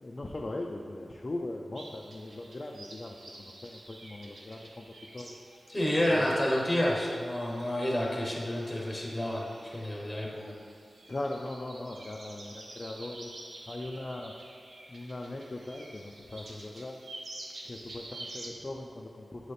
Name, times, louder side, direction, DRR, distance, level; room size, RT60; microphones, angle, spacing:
voice 1, 0.0-4.8 5.1-5.4 6.1-6.3 11.1-13.3 13.7-14.3 14.9-17.0 17.6-19.5, left 2 dB, 35° left, 1 dB, 0.3 m, -39 dB
sound 1, 1.7-18.5, right 2 dB, 70° right, 0.7 m, -49 dB
voice 2, 5.7-10.5, left 1 dB, 5° left, -3 dB, 1.0 m, -29 dB
7.7 x 4.0 x 3.3 m, 2.4 s
wide cardioid pair, 130°, 0 cm